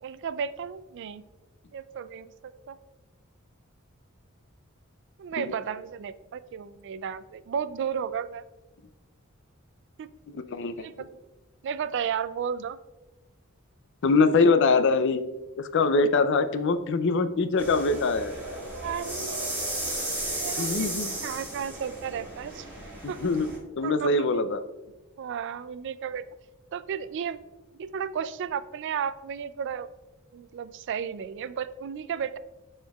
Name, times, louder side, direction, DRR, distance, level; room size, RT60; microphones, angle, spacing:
voice 1, 0.0-1.3 1.7-2.8 5.2-8.4 10.0-10.1 10.8-11.1 11.6-12.8 18.7-19.5 20.4-21.0 21.2-22.7 23.1-23.2 23.8-24.4 25.2-26.2 26.7-27.4 27.7-29.9 30.3-32.4, right 7 dB, 60° right, 14 dB, 0.3 m, -33 dB
voice 2, 10.3-10.7 14.0-15.2 15.6-18.3 20.6-21.2 23.2-24.6, left 3 dB, 60° left, 11 dB, 0.5 m, -23 dB
sound 1, 17.6-23.6, right 1 dB, 10° right, 2.4 m, -34 dB
12.5 x 4.4 x 2.3 m, 1.1 s
head